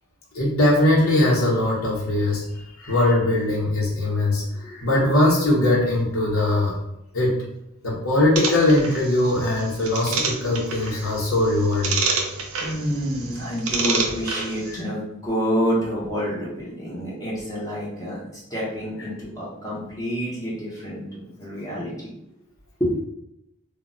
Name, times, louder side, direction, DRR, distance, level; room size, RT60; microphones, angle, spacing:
voice 1, 0.3-2.4 2.8-6.7 7.1-7.4 7.8-12.0 14.7-14.8, left 1 dB, 75° left, -4 dB, 0.8 m, -21 dB
sound 1, 8.4-14.8, right 4 dB, 85° right, 0.5 m, -29 dB
voice 2, 12.6-22.2 22.8-23.0, equal, 15° left, -7 dB, 0.7 m, -28 dB
2.1 x 2.0 x 3.7 m, 0.82 s
head